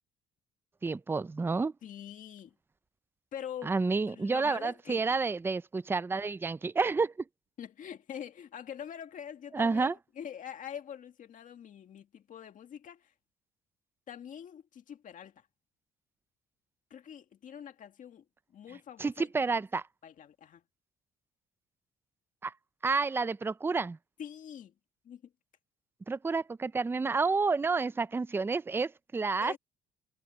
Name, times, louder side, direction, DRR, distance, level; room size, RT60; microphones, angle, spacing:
voice 1, 0.8-1.7 3.6-7.1 9.5-9.9 19.0-19.8 22.4-22.5 22.8-24.0 26.1-29.5, right 4 dB, 15° right, 0.5 m, -29 dB
voice 2, 1.8-2.5 3.3-3.8 4.0-5.0 7.6-13.1 14.1-15.5 16.9-18.2 18.5-19.6 20.0-20.6 24.2-24.7 25.0-25.3 29.4-29.6, left 9 dB, 50° left, 1.9 m, -45 dB
cardioid pair, 110°, 17 cm